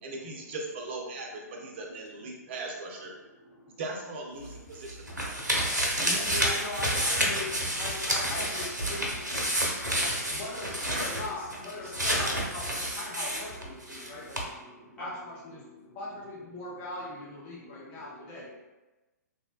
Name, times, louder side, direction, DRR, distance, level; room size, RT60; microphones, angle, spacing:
voice 1, 0.0-3.1 3.8-6.4, right 2 dB, 40° right, 0 dB, 0.5 m, -40 dB
sound 1, 4.4-14.1 14.3-14.4, equal, 85° right, 0.6 m, -29 dB
voice 2, 6.0-7.5 7.8-9.1 10.3-14.4 15.0-15.6 15.9-18.5, left 2 dB, 30° left, -5 dB, 0.5 m, -40 dB
voice 3, 9.5-10.4 11.8-11.9 14.0-14.1 14.7-15.1, left 1 dB, 15° left, -8 dB, 0.9 m, -49 dB
2.7 x 2.1 x 2.2 m, 1.1 s
figure-of-eight pair, 120°, 9 cm